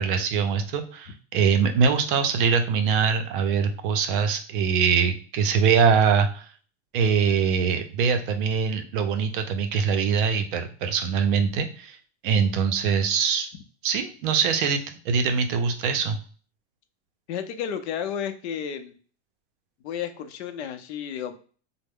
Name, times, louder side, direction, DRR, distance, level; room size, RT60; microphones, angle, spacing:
voice 1, 0.0-6.5 6.9-12.0 12.2-13.5 13.8-16.2, right 6 dB, 50° right, 7 dB, 0.5 m, -23 dB
voice 2, 17.3-18.9 19.8-21.3, left 8 dB, 70° left, 8 dB, 0.6 m, -32 dB
3.3 x 2.1 x 3.5 m, 0.41 s
supercardioid pair, 155°, 35 cm